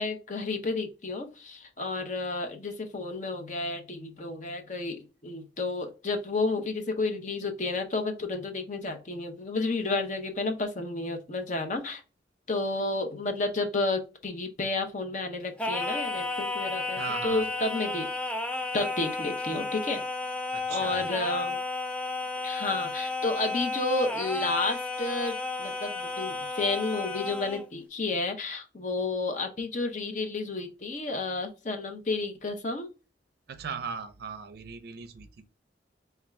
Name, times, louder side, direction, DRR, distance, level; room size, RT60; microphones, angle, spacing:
voice 1, 0.0-12.0 12.5-18.1 18.7-20.0 20.7-21.6 22.4-32.9, left 3 dB, 40° left, 0.7 m, -31 dB
Singing, 15.6-27.7, left 3 dB, 5° left, 0.3 m, -33 dB
voice 2, 17.0-17.5 20.5-21.0 33.5-35.5, right 6 dB, 55° right, 0.5 m, -38 dB
3.5 x 2.4 x 4.1 m
head